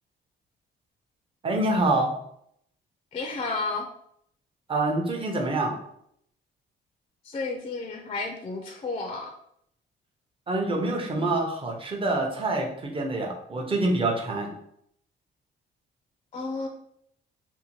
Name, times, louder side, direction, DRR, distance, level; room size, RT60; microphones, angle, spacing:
voice 1, 1.4-2.1 4.7-5.8 10.5-14.5, right 2 dB, 25° right, 0 dB, 0.7 m, -26 dB
voice 2, 3.1-3.9 7.2-9.3 11.1-11.3 16.3-16.7, left 3 dB, 30° left, 3 dB, 0.4 m, -32 dB
2.6 x 2.2 x 2.9 m, 0.71 s
cardioid pair, 90°, 20 cm